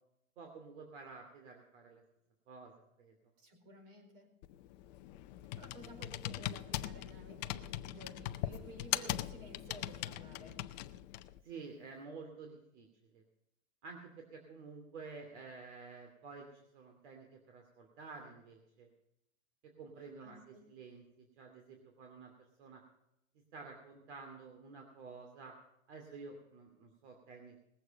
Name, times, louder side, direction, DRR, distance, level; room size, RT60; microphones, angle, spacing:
voice 1, 0.4-2.0 2.5-2.7 3.0-3.1 5.1-5.2 11.4-13.2 13.8-18.9 19.8-22.8 23.5-25.5 25.9-27.6, right 4 dB, 60° right, 3 dB, 2.7 m, -51 dB
voice 2, 3.4-4.3 5.6-10.7 20.0-20.6, right 1 dB, 45° right, 5 dB, 4.5 m, -53 dB
Computer keyboard, 4.4-11.4, left 14 dB, 35° left, 0.5 m, -41 dB
20.0 x 8.1 x 5.3 m, 0.83 s
hypercardioid pair, 150°, 39 cm